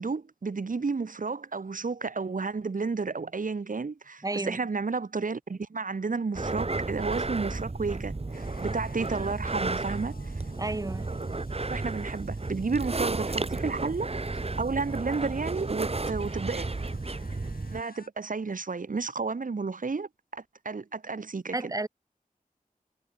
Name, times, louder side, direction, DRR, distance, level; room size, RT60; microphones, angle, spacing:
voice 1, 0.0-10.1 11.7-14.1 14.6-16.7 17.7-21.7, right 4 dB, 65° right, 1.1 m, -32 dB
voice 2, 4.2-4.6 10.6-11.1 21.5-21.9, right 2 dB, 25° right, 0.8 m, -32 dB
sound 1, 6.3-17.8, right 3 dB, 45° right, 1.4 m, -33 dB
sound 2, 8.3-18.1, left 4 dB, 85° left, 3.3 m, -57 dB
wide cardioid pair, 60°, 15 cm